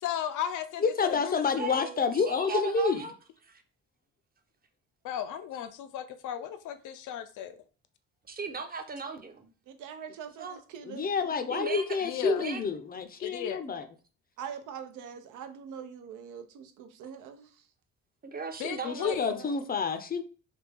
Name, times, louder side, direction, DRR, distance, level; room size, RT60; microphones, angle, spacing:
voice 1, 0.0-1.4 5.0-7.6 12.0-12.4 13.2-13.6 18.6-19.5, left 10 dB, 80° left, 0.5 m, -36 dB
voice 2, 0.8-3.1 10.9-13.8 18.8-20.2, left 5 dB, 30° left, 0.5 m, -29 dB
voice 3, 1.6-3.1 3.4-3.6 8.3-9.5 10.4-10.6 11.5-12.6 18.2-19.4, right 5 dB, 30° right, 0.6 m, -37 dB
voice 4, 9.7-11.1 14.4-17.7 19.3-19.6, right 7 dB, 90° right, 0.6 m, -43 dB
3.3 x 2.3 x 3.4 m
cardioid pair, 90°, 30 cm